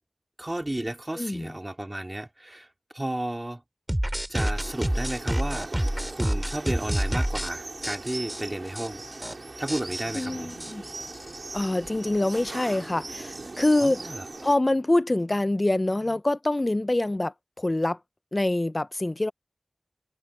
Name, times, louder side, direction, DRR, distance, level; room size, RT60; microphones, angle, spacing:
voice 1, 0.4-2.7 2.9-3.6 4.3-9.0 9.6-10.5 13.8-14.3, right 1 dB, 30° right, 3.6 m, -33 dB
voice 2, 1.2-1.5 10.1-10.8 11.5-14.1 14.4-18.0 18.3-19.3, left 1 dB, 40° left, 0.5 m, -25 dB
sound 1, 3.9-7.5 7.8-8.4 8.8-8.9 9.1-9.3 9.7-11.4, right 1 dB, 15° right, 2.6 m, -28 dB
sound 2, 4.6-14.6, right 2 dB, 75° right, 4.7 m, -40 dB
open air
wide cardioid pair, 45°, 0 cm